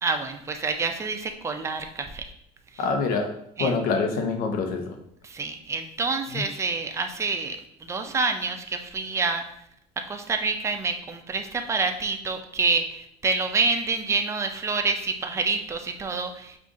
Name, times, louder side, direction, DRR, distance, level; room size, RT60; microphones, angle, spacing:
voice 1, 0.0-2.2 3.6-3.8 5.2-9.4 10.0-16.6, right 4 dB, 15° right, 5 dB, 0.4 m, -27 dB
voice 2, 2.8-3.3 3.6-5.0 6.3-6.4, left 4 dB, 65° left, 4 dB, 0.8 m, -25 dB
5.3 x 2.5 x 3.6 m, 0.73 s
cardioid pair, 140°, 16 cm